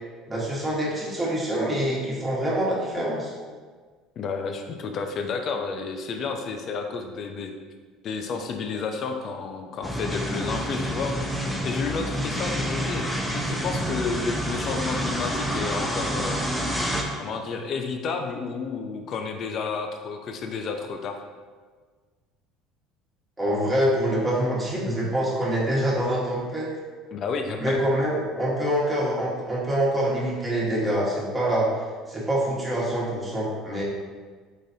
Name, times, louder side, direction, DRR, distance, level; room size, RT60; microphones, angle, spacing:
voice 1, 0.3-3.3 23.4-26.7 27.6-31.7 32.1-33.8, right 1 dB, 15° right, -6 dB, 1.4 m, -25 dB
voice 2, 4.2-7.5 8.0-16.5 17.2-21.2 27.1-27.8, left 5 dB, 50° left, 4 dB, 0.5 m, -31 dB
sound 1, 9.8-17.0, equal, ahead, 0.6 m, -28 dB
4.9 x 3.9 x 2.8 m, 1.5 s
supercardioid pair, 110°, 0 cm